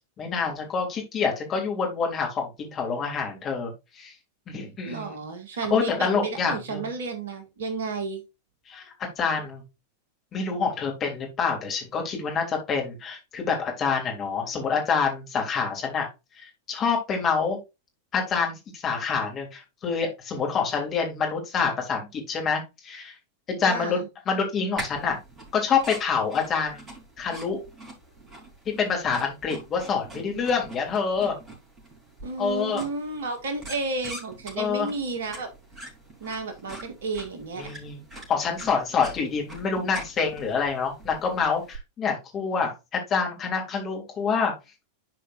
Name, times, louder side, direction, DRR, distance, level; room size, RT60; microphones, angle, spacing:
voice 1, 0.2-4.1 4.5-5.1 5.7-6.9 8.7-8.8 9.2-9.6 10.3-16.1 16.4-17.6 18.1-23.2 23.5-24.0 24.3-25.2 25.5-26.8 27.2-27.6 28.6-31.4 32.4-32.8 34.6-34.9 37.6-38.0 38.3-44.5, left 5 dB, 25° left, 1 dB, 3.1 m, -27 dB
voice 2, 4.9-8.2 23.7-24.1 32.2-35.5 36.2-37.7, right 3 dB, 60° right, 7 dB, 1.9 m, -32 dB
sound 1, 24.8-41.8, right 1 dB, 20° right, 4.1 m, -44 dB
11.5 x 5.0 x 2.6 m, 0.25 s
figure-of-eight pair, 90°, 0 cm